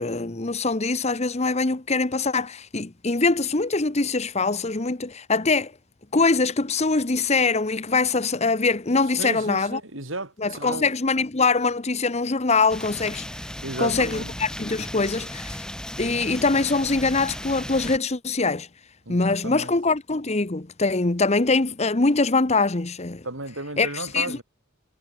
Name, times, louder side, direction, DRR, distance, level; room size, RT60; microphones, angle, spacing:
voice 1, 0.0-5.7 6.1-9.8 10.4-13.3 13.8-15.6 16.0-18.7 19.1-23.2 23.8-24.4, left 3 dB, 30° left, 1.0 m, -23 dB
voice 2, 9.2-10.9 13.6-14.3 19.1-19.8 23.2-24.4, right 2 dB, 65° right, 6.4 m, -34 dB
sound 1, 12.7-18.0, equal, 5° left, 3.0 m, -36 dB
head